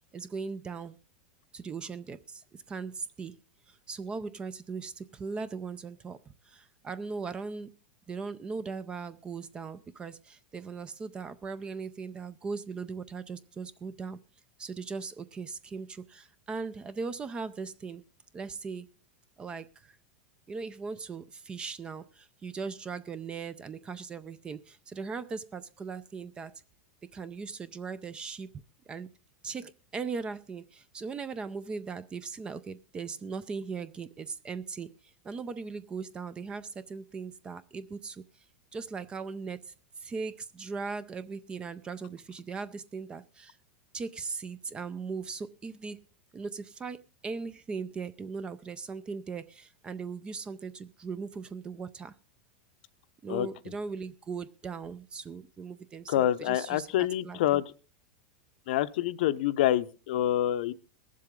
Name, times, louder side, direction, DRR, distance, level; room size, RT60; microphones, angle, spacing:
voice 1, 0.1-1.0 1.5-3.4 3.7-7.7 8.1-14.2 14.6-18.0 18.3-18.9 19.4-20.0 20.5-26.6 27.1-28.5 28.9-29.1 29.4-38.2 38.7-39.7 40.0-43.6 43.9-46.0 46.3-52.1 53.2-56.9 57.2-57.6, right 5 dB, 15° right, 15 dB, 0.5 m, -39 dB
voice 2, 56.1-57.6 58.7-60.7, left 12 dB, 65° left, 13 dB, 0.7 m, -27 dB
22.0 x 7.5 x 3.7 m, 0.36 s
supercardioid pair, 150°, 6 cm